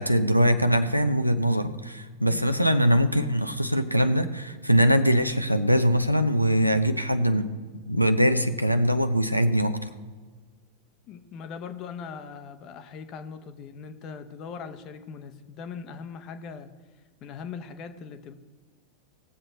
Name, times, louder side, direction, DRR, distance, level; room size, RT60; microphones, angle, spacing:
voice 1, 0.0-7.5 7.9-9.9, equal, 90° right, 9 dB, 0.7 m, -22 dB
voice 2, 11.1-16.7 17.2-18.3, left 6 dB, 35° left, 9 dB, 1.0 m, -40 dB
19.5 x 7.6 x 4.0 m, 1.4 s
figure-of-eight pair, 90°, 0 cm